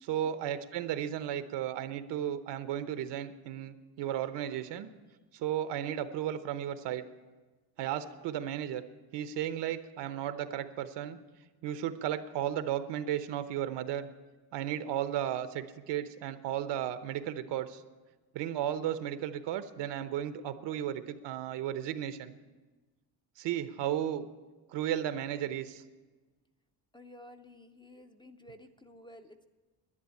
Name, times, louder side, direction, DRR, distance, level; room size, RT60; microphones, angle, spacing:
voice 1, 0.0-4.9 5.3-7.1 7.8-8.8 9.1-11.2 11.6-14.1 14.5-17.8 18.3-22.3 23.4-24.2 24.7-25.8, right 11 dB, 80° right, 11 dB, 1.0 m, -34 dB
voice 2, 26.9-29.5, left 1 dB, 10° left, 7 dB, 0.5 m, -53 dB
11.0 x 10.5 x 8.5 m, 1.3 s
cardioid pair, 145°, 41 cm